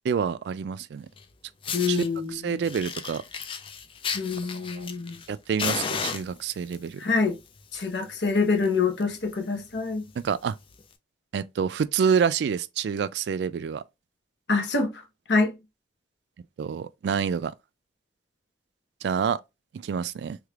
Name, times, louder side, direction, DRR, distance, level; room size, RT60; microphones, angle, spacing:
voice 1, 0.0-1.1 1.9-2.0 2.3-3.2 4.5-4.9 5.3-7.0 10.2-10.6 11.3-13.8 16.6-17.5 19.0-19.4 19.7-20.4, right 6 dB, 70° right, 0.3 m, -27 dB
Fire, 1.2-1.3 1.6-2.1 2.6-5.3 5.6-6.8 7.6-7.8 8.1-8.2 8.6-8.7 9.0-9.2 9.8-9.9 10.8-10.9, left 6 dB, 30° left, 0.4 m, -33 dB
voice 2, 1.7-2.6 4.1-5.2 7.0-7.4 7.7-10.1 14.5-15.0 15.3-15.5, left 4 dB, 75° left, 0.9 m, -26 dB
3.3 x 3.2 x 2.3 m
head